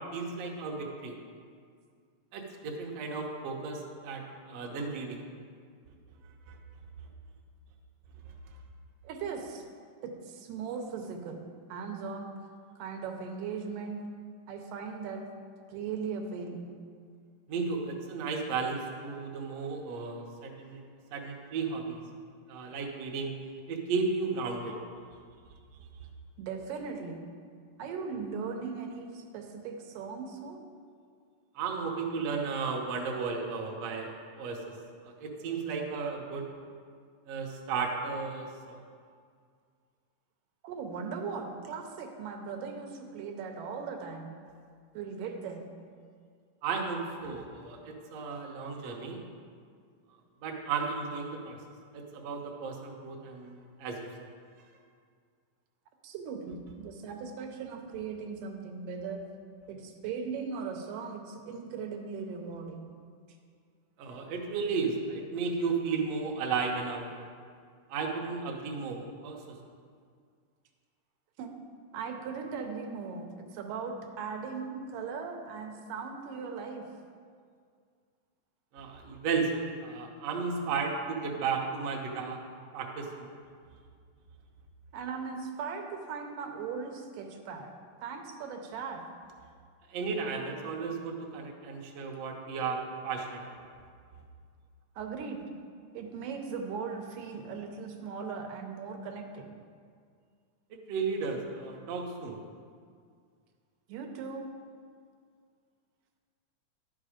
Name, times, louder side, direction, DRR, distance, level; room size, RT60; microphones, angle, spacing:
voice 1, 0.1-1.2 2.3-4.2 4.5-5.2 6.5-6.6 17.5-20.8 21.1-22.0 22.5-23.3 23.7-24.8 31.5-34.6 35.0-36.5 37.3-38.8 46.6-49.2 50.4-51.6 51.9-54.1 64.0-67.3 67.9-69.4 78.7-82.4 82.7-83.3 89.9-93.7 100.9-102.4, right 4 dB, 65° right, 0 dB, 1.7 m, -34 dB
voice 2, 9.0-9.7 10.0-11.4 11.7-12.3 12.8-14.0 14.5-15.2 15.7-16.7 26.4-27.2 27.8-30.6 40.6-44.4 44.9-45.6 56.0-59.2 59.7-62.9 71.4-71.5 71.9-76.9 84.9-87.7 88.0-89.0 95.0-95.4 95.9-99.5 103.9-104.5, right 5 dB, 80° right, 3 dB, 2.4 m, -38 dB
11.0 x 6.3 x 5.0 m, 2.1 s
omnidirectional pair, 3.8 m